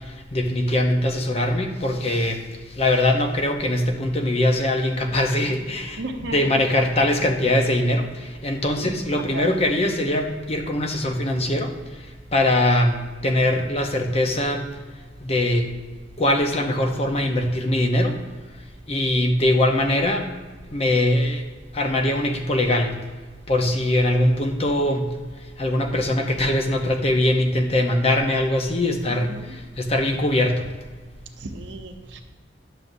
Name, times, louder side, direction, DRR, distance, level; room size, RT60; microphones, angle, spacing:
voice 1, 0.3-2.4 2.8-6.0 6.3-8.1 8.4-11.7 12.3-14.6 15.3-15.6 16.2-18.2 18.9-20.3 20.7-21.4 21.7-22.9 23.5-25.0 25.6-29.3 29.8-30.6, left 1 dB, 30° left, 3 dB, 0.7 m, -21 dB
voice 2, 6.0-6.3 8.8-9.5 29.1-29.6 31.4-32.2, right 2 dB, 70° right, 4 dB, 0.8 m, -35 dB
11.0 x 6.4 x 2.6 m, 1.4 s
head